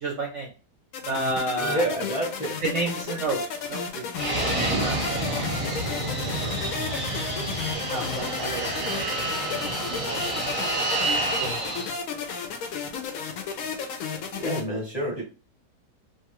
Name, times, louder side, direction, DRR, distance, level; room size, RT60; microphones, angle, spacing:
voice 1, 0.0-0.5 1.1-1.9 2.6-4.0 4.8-5.2 5.5-5.6 5.9-6.5 7.9-9.1 9.6-10.2 11.4-11.7, right 2 dB, 65° right, 1 dB, 0.7 m, -31 dB
sound 1, 0.9-14.6, left 6 dB, 70° left, 0.9 m, -33 dB
voice 2, 1.6-2.6 14.3-15.2, right 1 dB, 30° left, -5 dB, 0.8 m, -28 dB
Fixed-wing aircraft airplane, 4.2-12.0, right 1 dB, 30° right, 0.7 m, -28 dB
3.1 x 2.4 x 2.9 m, 0.35 s
omnidirectional pair, 1.8 m